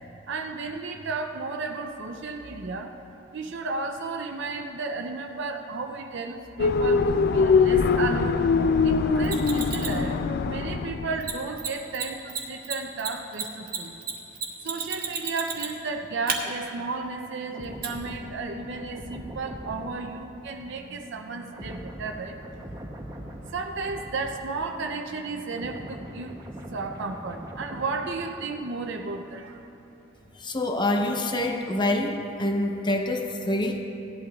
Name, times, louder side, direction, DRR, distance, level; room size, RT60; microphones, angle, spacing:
voice 1, 0.0-2.9 3.3-8.4 8.8-13.9 14.6-22.6 23.2-26.4 26.7-29.6, right 3 dB, 65° right, 4 dB, 0.6 m, -33 dB
sound 1, 6.6-11.5, left 4 dB, 55° left, 0.4 m, -22 dB
Mechanisms, 9.2-10.0 11.2-11.3 11.6-11.7 11.9-12.0 12.3-15.9 16.3-16.4 17.8-17.9, right 6 dB, 50° right, 1.4 m, -31 dB
sound 2, 17.5-25.0 25.3-29.0 29.3-29.5, equal, 20° right, 0.9 m, -42 dB
voice 2, 30.4-33.8, left 1 dB, 25° left, 3 dB, 0.8 m, -26 dB
17.5 x 11.5 x 2.4 m, 3.0 s
head